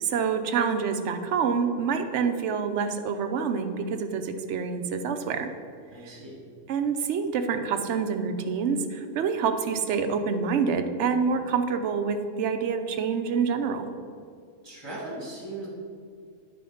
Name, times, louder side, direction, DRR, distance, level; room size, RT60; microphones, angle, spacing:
voice 1, 0.0-5.5 6.7-13.9, right 6 dB, 65° right, 7 dB, 0.9 m, -27 dB
voice 2, 5.9-6.4 14.6-15.7, right 2 dB, 20° right, -5 dB, 1.9 m, -38 dB
9.9 x 4.2 x 5.6 m, 2.2 s
omnidirectional pair, 1.3 m